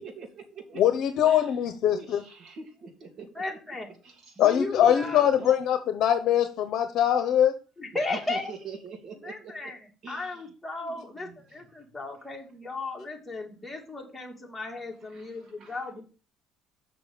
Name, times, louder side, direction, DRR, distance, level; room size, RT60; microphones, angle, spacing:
voice 1, 0.0-0.8 1.3-1.5 1.9-3.6 4.0-4.5 4.8-5.6 7.9-9.7 10.0-10.4 10.8-11.4 11.9-12.0 15.1-15.8, right 5 dB, 45° right, 4 dB, 2.9 m, -44 dB
voice 2, 0.8-2.2 4.4-7.5, left 10 dB, 60° left, 9 dB, 1.0 m, -22 dB
voice 3, 3.3-3.9 4.4-5.3 7.8-8.5 9.2-16.0, left 2 dB, 10° left, 0 dB, 2.7 m, -36 dB
6.9 x 6.0 x 6.9 m, 0.34 s
cardioid pair, 120°, 0 cm